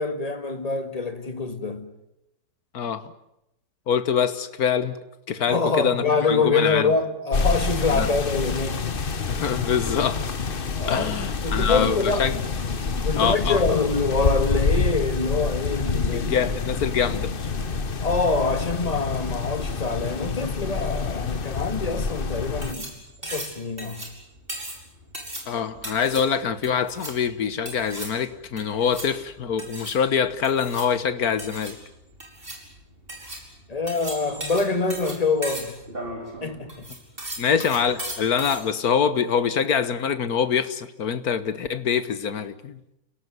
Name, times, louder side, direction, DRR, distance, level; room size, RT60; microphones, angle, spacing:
voice 1, 0.0-1.9 5.5-9.0 10.7-12.3 13.0-16.3 18.0-22.9 23.2-24.1 26.1-26.2 33.7-35.7 36.4-36.8, left 4 dB, 20° left, 1.9 m, -25 dB
voice 2, 2.7-3.1 3.9-5.0 5.3-6.9 7.9-8.1 9.3-10.3 10.9-12.4 13.2-13.6 16.1-17.3 25.5-31.8 37.4-42.8, left 7 dB, 55° left, 1.7 m, -24 dB
sound 1, 7.3-22.7, left 4 dB, 35° left, 1.0 m, -27 dB
sound 2, 22.4-38.6, right 1 dB, 25° right, 5.5 m, -37 dB
29.5 x 18.0 x 9.4 m
omnidirectional pair, 2.1 m